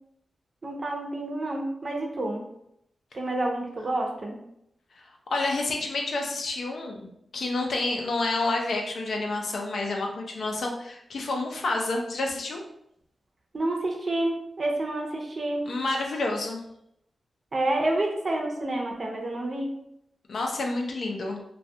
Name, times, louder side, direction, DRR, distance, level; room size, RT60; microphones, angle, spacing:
voice 1, 0.6-2.4 3.1-4.4 13.5-15.7 17.5-19.7, right 1 dB, 45° right, 1 dB, 0.5 m, -29 dB
voice 2, 5.3-12.6 15.7-16.6 20.3-21.4, left 2 dB, 75° left, 1 dB, 0.4 m, -29 dB
2.3 x 2.2 x 2.7 m, 0.76 s
wide cardioid pair, 105°, 0 cm